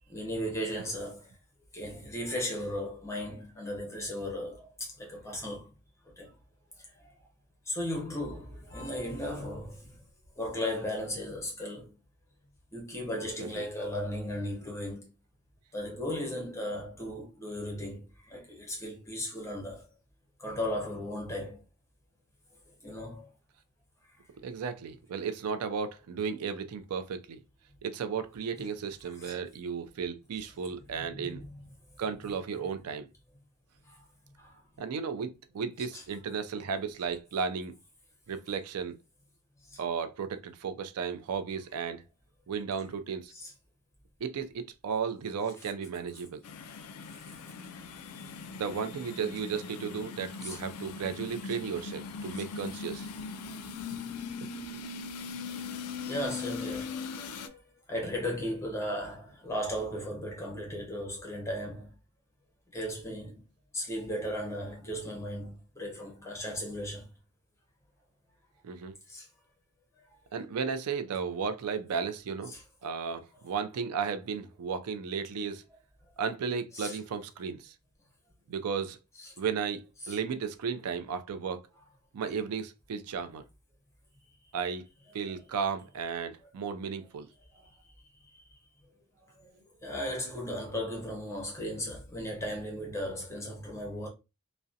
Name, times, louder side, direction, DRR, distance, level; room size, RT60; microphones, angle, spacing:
voice 1, 0.1-1.3 1.7-5.7 6.1-6.3 6.8-6.9 7.7-10.0 10.4-11.9 12.7-15.1 15.7-19.8 20.4-21.6 22.8-23.3 28.6-28.7 29.2-29.3 30.9-31.6 33.9-34.0 34.4-34.6 35.9-36.0 39.7-39.8 43.3-43.5 45.6-45.7 47.2-47.9 50.4-50.6 56.1-57.6 57.9-61.9 62.7-63.4 63.7-67.1 69.1-69.3 72.5-72.6 76.7-77.0 79.2-79.3 80.0-80.2 87.5-87.7 89.4-89.5 89.8-94.1, equal, 15° left, 0.7 m, -36 dB
voice 2, 24.4-27.4 27.8-31.4 32.0-33.1 34.8-37.8 38.3-39.0 39.8-42.1 42.5-43.3 44.2-46.4 48.5-53.1 53.9-54.0 54.4-54.8 55.6-55.7 68.6-68.9 70.3-72.5 72.8-75.6 76.2-77.7 78.5-79.0 79.4-81.7 82.1-83.5 84.5-84.8 85.1-87.3, right 6 dB, 90° right, 0.4 m, -34 dB
sound 1, 46.4-57.5, left 5 dB, 85° left, 0.3 m, -40 dB
2.4 x 2.1 x 2.6 m
head